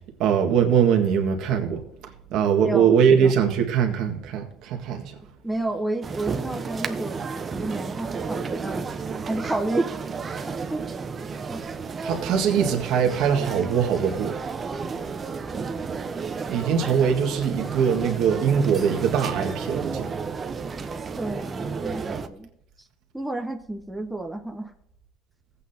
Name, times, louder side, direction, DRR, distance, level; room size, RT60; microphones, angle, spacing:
voice 1, 0.2-1.8 2.3-5.0 12.0-14.3 16.5-20.1, right 7 dB, 65° right, 1.7 m, -22 dB
voice 2, 2.6-3.6 5.4-7.2 7.5-8.9 9.3-10.0 10.4-10.8 11.5-11.6 21.2-22.5 23.1-24.7, right 2 dB, 5° right, 0.9 m, -31 dB
sound 1, 6.0-22.3, right 5 dB, 30° right, 0.9 m, -32 dB
15.5 x 8.5 x 2.8 m
supercardioid pair, 105°, 0 cm